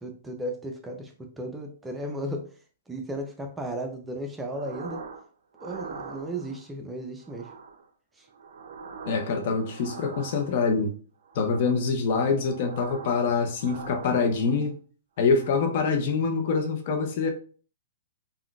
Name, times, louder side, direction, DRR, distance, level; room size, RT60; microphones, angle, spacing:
voice 1, 0.0-2.5 2.9-5.0 5.6-7.5 8.2-8.3, right 1 dB, 10° right, 0.5 m, -35 dB
sound 1, 4.5-5.2 5.6-6.6 7.2-7.9 8.3-10.7 11.2-11.9 12.2-13.3 13.5-14.7 15.2-15.9, right 5 dB, 70° right, 0.5 m, -43 dB
voice 2, 9.1-10.9 11.3-14.8 15.2-17.3, left 4 dB, 50° left, 0.7 m, -25 dB
3.6 x 2.3 x 2.4 m
hypercardioid pair, 125°, 0 cm